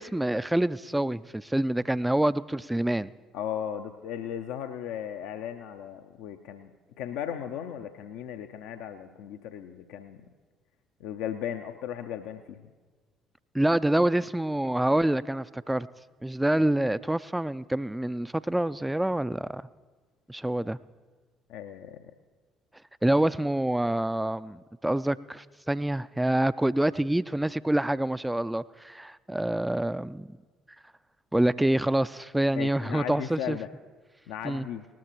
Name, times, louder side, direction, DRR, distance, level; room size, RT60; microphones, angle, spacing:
voice 1, 0.0-3.1 13.5-15.9 16.2-19.6 20.3-20.8 23.0-30.3 31.3-33.6 34.4-34.7, right 1 dB, 5° right, 17 dB, 0.3 m, -26 dB
voice 2, 3.3-10.2 11.0-12.6 21.5-22.1 32.5-33.7 34.3-34.8, left 9 dB, 60° left, 7 dB, 0.5 m, -36 dB
19.0 x 13.0 x 3.0 m, 1.4 s
figure-of-eight pair, 50°, 0 cm